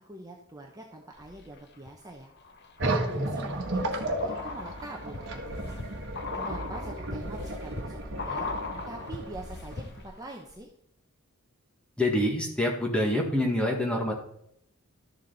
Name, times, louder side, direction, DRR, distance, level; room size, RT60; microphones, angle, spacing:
voice 1, 0.1-2.3 2.8-5.7 6.3-8.5 8.9-10.7, right 1 dB, 15° right, 1 dB, 1.0 m, -44 dB
sound 1, 1.2-1.9 2.4-10.2 10.5-10.6, left 3 dB, 50° left, 1.0 m, -40 dB
sound 2, 2.8-10.0, right 1 dB, 55° right, 1.4 m, -33 dB
voice 2, 12.0-14.1, left 1 dB, 5° left, 0 dB, 1.8 m, -26 dB
12.5 x 7.3 x 4.1 m, 0.74 s
head